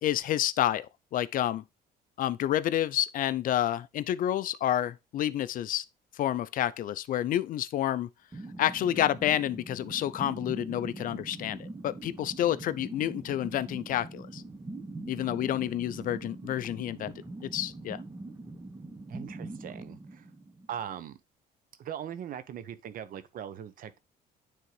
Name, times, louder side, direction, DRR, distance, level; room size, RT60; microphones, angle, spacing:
voice 1, 0.0-1.6 2.2-5.8 6.2-8.1 8.6-14.4 15.1-17.1 17.4-18.0, left 12 dB, 55° left, 0.4 m, -29 dB
sound 1, 8.3-21.0, right 2 dB, 20° right, 0.9 m, -43 dB
voice 2, 19.1-20.3 20.7-21.2 21.8-24.0, right 9 dB, 55° right, 0.8 m, -40 dB
9.3 x 3.7 x 3.2 m
cardioid pair, 110°, 17 cm